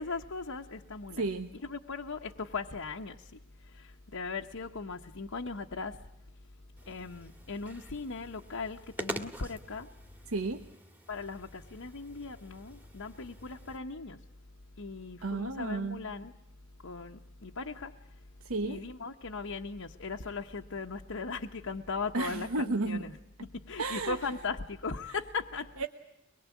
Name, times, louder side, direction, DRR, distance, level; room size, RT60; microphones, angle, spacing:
voice 1, 0.0-1.3 1.6-6.0 6.9-9.9 11.1-14.2 14.8-16.3 16.8-17.9 18.6-23.2 23.4-25.7, left 4 dB, 70° left, 1.0 m, -38 dB
voice 2, 1.2-1.5 10.3-10.6 15.2-16.0 18.4-18.8 22.1-23.0 23.8-24.2 25.8-25.9, right 3 dB, 85° right, 1.1 m, -32 dB
sound 1, 6.8-13.8, right 1 dB, 10° right, 1.9 m, -46 dB
24.0 x 21.5 x 8.3 m
head